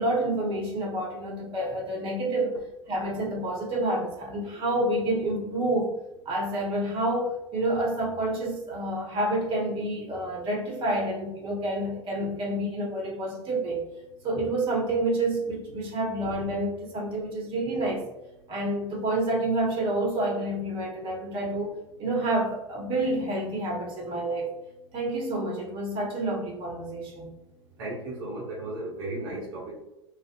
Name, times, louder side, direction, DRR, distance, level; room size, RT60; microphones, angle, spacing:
voice 1, 0.0-2.6 2.9-5.9 6.2-13.8 14.2-18.1 18.5-21.7 22.0-24.5 24.9-27.3, right 1 dB, 35° right, -1 dB, 0.9 m, -28 dB
voice 2, 27.8-29.8, right 2 dB, 60° right, -5 dB, 0.7 m, -35 dB
2.4 x 2.4 x 2.5 m, 0.95 s
figure-of-eight pair, 80°, 15 cm